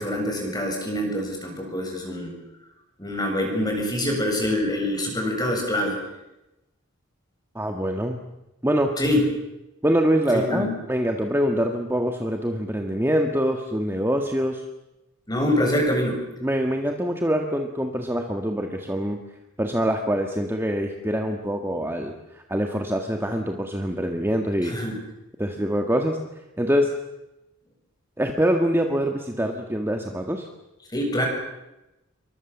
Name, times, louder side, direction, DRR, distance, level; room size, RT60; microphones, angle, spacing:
voice 1, 0.0-2.4 3.0-6.0 9.0-9.2 10.3-10.7 15.3-16.2 24.6-24.9 30.9-31.3, left 1 dB, 20° left, 2 dB, 7.7 m, -25 dB
voice 2, 7.6-8.2 8.6-8.9 9.8-14.7 16.4-19.2 19.6-24.7 25.4-26.2 26.6-26.9 28.2-30.5, equal, 10° right, 3 dB, 1.8 m, -24 dB
28.5 x 24.0 x 7.4 m, 0.94 s
head